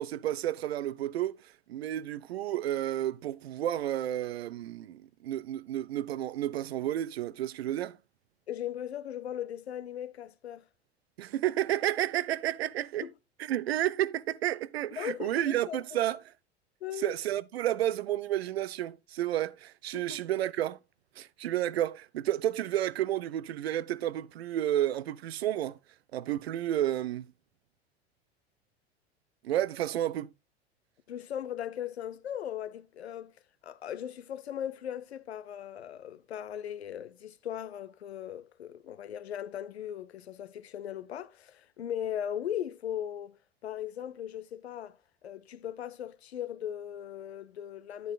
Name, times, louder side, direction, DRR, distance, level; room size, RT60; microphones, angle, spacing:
voice 1, 0.0-8.0 11.2-13.1 13.4-16.2 17.0-20.8 21.2-25.8 26.1-27.3 29.4-30.3, right 12 dB, 70° right, 0.5 m, -31 dB
voice 2, 8.5-10.6 13.0-13.1 15.0-16.0 16.8-17.1 19.9-20.2 31.1-33.3 33.6-43.3 43.6-45.0 45.2-48.1, left 10 dB, 75° left, 0.7 m, -38 dB
10.0 x 9.2 x 2.3 m
figure-of-eight pair, 75°, 32 cm